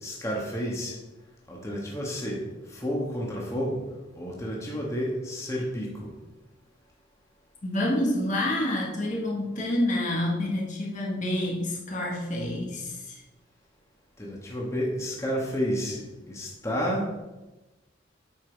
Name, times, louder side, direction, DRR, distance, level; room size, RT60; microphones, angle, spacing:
voice 1, 0.0-0.9 1.5-2.4 2.7-3.8 4.1-6.1 14.2-17.0, equal, 15° left, -3 dB, 1.6 m, -30 dB
voice 2, 7.6-13.2, left 1 dB, 40° left, -2 dB, 1.6 m, -28 dB
8.7 x 6.0 x 4.6 m, 1.1 s
head